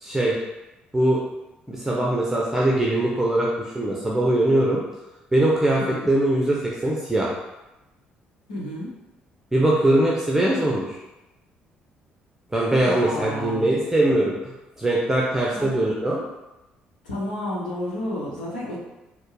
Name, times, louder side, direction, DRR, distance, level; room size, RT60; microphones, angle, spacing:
voice 1, 0.0-0.4 0.9-1.2 1.7-4.8 5.3-7.3 9.5-11.0 12.5-14.4 14.8-16.2, right 1 dB, 10° right, -4 dB, 0.8 m, -21 dB
voice 2, 5.8-6.1 8.5-8.9 12.8-13.8 15.5-15.7 17.0-18.8, left 1 dB, 75° left, -6 dB, 1.0 m, -31 dB
4.5 x 2.2 x 4.7 m, 1.0 s
figure-of-eight pair, 45°, 5 cm